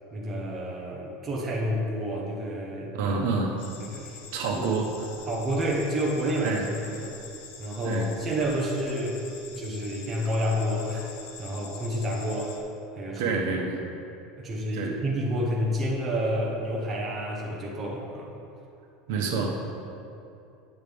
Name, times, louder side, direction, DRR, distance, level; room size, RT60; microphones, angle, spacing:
voice 1, 0.1-3.1 3.8-4.2 4.5-4.6 5.3-7.1 7.6-9.2 9.5-11.1 11.4-12.6 12.9-13.3 14.4-18.4, equal, 15° right, -3 dB, 1.0 m, -29 dB
voice 2, 2.9-3.6 4.3-5.1 6.4-6.6 7.8-8.1 13.2-13.8 14.7-14.9 19.1-19.6, right 4 dB, 65° right, 1 dB, 1.1 m, -28 dB
sound 1, 3.6-12.6, left 5 dB, 80° left, 1.1 m, -45 dB
9.5 x 8.1 x 3.6 m, 2.7 s
supercardioid pair, 170°, 0 cm